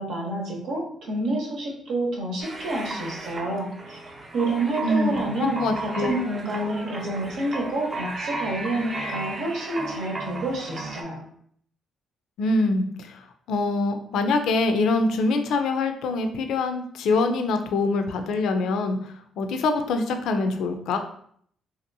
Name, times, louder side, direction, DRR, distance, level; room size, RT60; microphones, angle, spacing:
voice 1, 0.0-4.0 4.3-11.2, right 2 dB, 80° right, -1 dB, 0.9 m, -28 dB
sound 1, 2.4-11.0, right 2 dB, 35° right, 0.6 m, -35 dB
voice 2, 4.8-5.2 5.6-6.2 12.4-21.0, left 3 dB, 80° left, 6 dB, 0.4 m, -24 dB
2.9 x 2.7 x 2.6 m, 0.63 s
cardioid pair, 90°, 0 cm